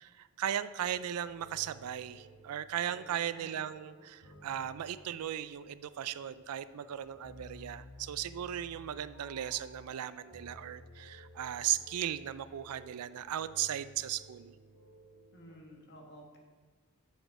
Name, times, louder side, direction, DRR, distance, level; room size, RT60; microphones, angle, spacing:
voice 1, 0.0-14.6, right 11 dB, 80° right, 15 dB, 0.4 m, -37 dB
sound 1, 0.8-15.6, left 1 dB, 75° left, 1.5 m, -55 dB
voice 2, 2.8-3.7 15.3-16.4, equal, 50° left, 1 dB, 1.4 m, -53 dB
8.0 x 6.4 x 4.7 m, 1.4 s
head